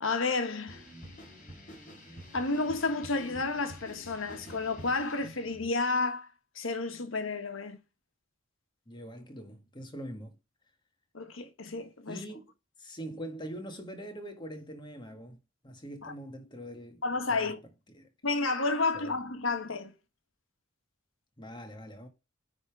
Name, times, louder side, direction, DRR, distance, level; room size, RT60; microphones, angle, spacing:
voice 1, 0.0-0.8 2.3-6.3 6.5-7.8 11.1-12.2 16.0-16.1 17.0-17.6 18.2-19.9, left 3 dB, 75° left, 1.4 m, -31 dB
sound 1, 0.7-5.7, equal, 40° left, 4.0 m, -48 dB
voice 2, 8.9-10.4 12.1-12.5 12.8-15.4 15.6-17.0 17.3-17.6 17.9-18.1 18.9-19.1 21.4-22.1, equal, 20° left, 1.6 m, -43 dB
9.7 x 3.7 x 4.8 m
head